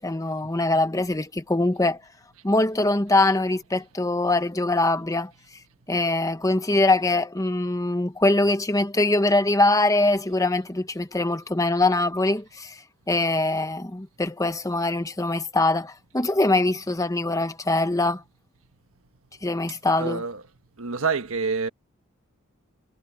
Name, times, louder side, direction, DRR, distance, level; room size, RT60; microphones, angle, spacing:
voice 1, 0.0-2.0 2.4-5.3 5.9-12.7 13.1-18.2 19.4-20.2, left 2 dB, 15° left, 1.0 m, -23 dB
voice 2, 20.0-20.4 20.8-21.7, right 4 dB, 70° right, 1.4 m, -27 dB
head